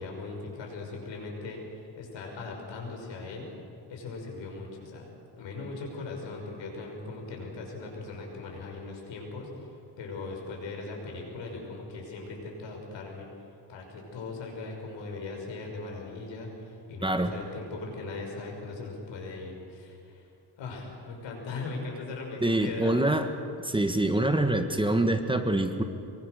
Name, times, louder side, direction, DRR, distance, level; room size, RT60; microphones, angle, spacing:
voice 1, 0.0-3.5 3.9-5.1 5.4-13.3 13.7-20.3 20.6-23.0, left 3 dB, 85° left, 1 dB, 5.9 m, -39 dB
voice 2, 17.0-17.3 22.4-23.3 23.6-25.8, right 1 dB, 10° right, 7 dB, 1.5 m, -25 dB
24.5 x 23.0 x 6.6 m, 2.5 s
cardioid pair, 110°, 43 cm